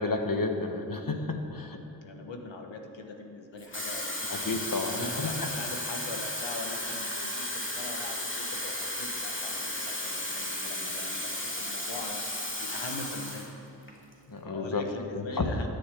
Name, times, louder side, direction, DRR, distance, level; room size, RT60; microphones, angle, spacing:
voice 1, 0.0-1.8 4.3-5.3 14.3-14.9 15.1-15.5, left 3 dB, 50° left, 4 dB, 1.3 m, -31 dB
voice 2, 2.0-4.3 4.9-13.5 14.4-15.7, left 2 dB, 85° left, 4 dB, 1.3 m, -42 dB
Water tap faucet / Fill (with liquid), 3.6-13.5 13.9-14.1, left 1 dB, 25° left, 2.2 m, -34 dB
12.5 x 6.9 x 7.6 m, 2.6 s
cardioid pair, 50°, 44 cm